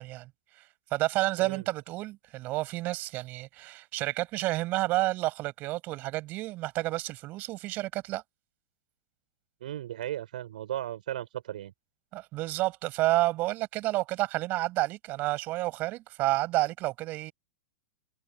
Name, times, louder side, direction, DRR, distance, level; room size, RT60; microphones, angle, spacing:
voice 1, 0.0-8.2 12.1-17.3, right 18 dB, 35° right, 7.4 m, -30 dB
voice 2, 9.6-11.7, right 12 dB, 60° right, 5.3 m, -36 dB
figure-of-eight pair, 100°, 5 cm